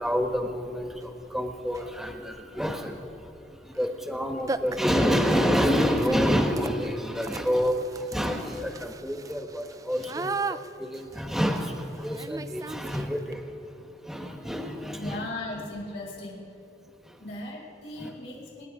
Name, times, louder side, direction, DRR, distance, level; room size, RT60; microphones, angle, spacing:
voice 1, 0.0-15.2 17.0-17.2 18.0-18.1, equal, ahead, 4 dB, 1.1 m, -28 dB
sound 1, 1.0-1.1 1.7-2.0 3.7-3.9 4.1-4.2 4.5-13.3, right 3 dB, 20° right, 0.3 m, -38 dB
voice 2, 15.0-16.6 17.2-18.7, left 2 dB, 80° left, -3 dB, 3.9 m, -38 dB
26.5 x 10.0 x 4.9 m, 2.8 s
head